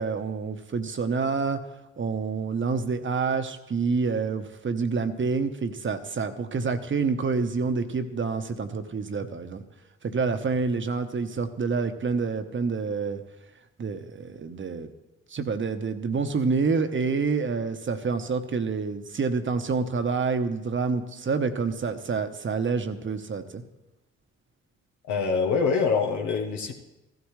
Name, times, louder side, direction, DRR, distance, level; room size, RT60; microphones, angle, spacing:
voice 1, 0.0-1.6 2.0-9.6 10.0-13.2 13.8-14.9 15.3-23.6, right 4 dB, 40° right, 9 dB, 1.1 m, -27 dB
voice 2, 25.1-26.7, left 5 dB, 80° left, 2 dB, 1.1 m, -24 dB
15.0 x 12.0 x 3.3 m, 1.0 s
hypercardioid pair, 50°, 30 cm